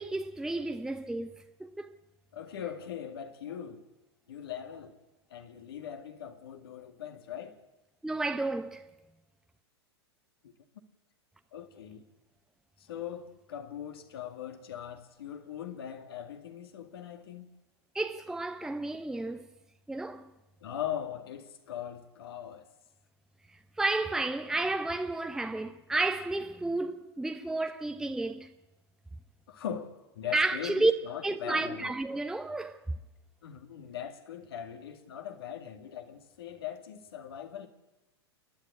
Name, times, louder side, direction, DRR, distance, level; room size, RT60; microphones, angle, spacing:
voice 1, 0.0-1.9 8.0-8.9 17.9-19.5 19.9-20.3 23.8-28.5 30.3-30.9 31.2-32.8, right 2 dB, 5° right, 0.8 m, -31 dB
voice 2, 2.3-3.8 4.3-4.9 5.3-7.6 10.4-10.5 11.5-12.0 12.8-17.5 20.6-22.6 29.5-31.9 33.4-37.7, left 9 dB, 65° left, 2.2 m, -40 dB
28.5 x 10.5 x 9.9 m
figure-of-eight pair, 100°, 14 cm